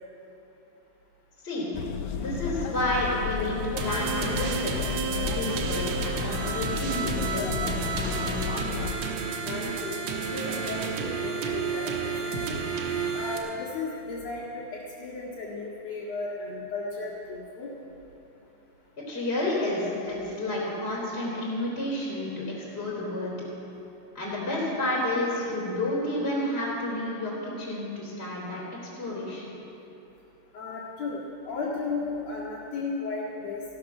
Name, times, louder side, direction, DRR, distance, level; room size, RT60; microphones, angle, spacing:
sound 1, 1.7-9.0, left 7 dB, 85° left, 1.6 m, -33 dB
voice 1, 2.1-4.7 5.0-8.4 19.0-23.4 24.1-28.6 29.0-29.5, left 1 dB, 15° left, -6 dB, 3.1 m, -30 dB
sound 2, 3.8-13.4, right 5 dB, 60° right, 2.0 m, -31 dB
voice 2, 9.4-10.0 10.3-12.6 13.1-17.7 30.5-33.6, left 3 dB, 50° left, -7 dB, 2.7 m, -35 dB
15.5 x 12.0 x 6.0 m, 2.9 s
omnidirectional pair, 4.2 m